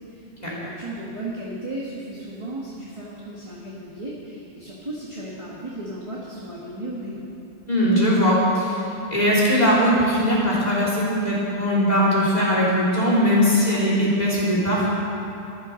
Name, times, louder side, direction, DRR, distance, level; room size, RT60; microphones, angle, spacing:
voice 1, 0.1-7.3, right 1 dB, 25° right, -6 dB, 1.7 m, -35 dB
voice 2, 7.7-8.8 9.1-14.9, equal, 30° left, -6 dB, 3.3 m, -20 dB
13.0 x 11.5 x 6.4 m, 2.9 s
omnidirectional pair, 1.3 m